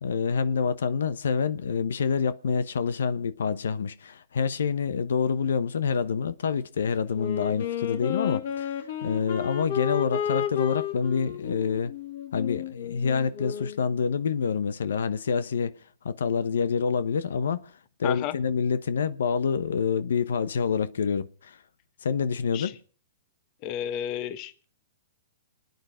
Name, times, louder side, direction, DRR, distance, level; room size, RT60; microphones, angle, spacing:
voice 1, 0.0-8.8 9.0-11.9 12.3-15.7 16.0-17.7 18.0-21.6 22.0-22.7, left 6 dB, 85° left, 1.0 m, -27 dB
Wind instrument woodwind instrument, 7.1-13.8, left 9 dB, 60° left, 3.0 m, -32 dB
voice 2, 18.0-18.3 22.5-22.7 23.6-24.7, left 11 dB, 35° left, 1.3 m, -32 dB
28.5 x 9.6 x 5.0 m
hypercardioid pair, 150°, 0 cm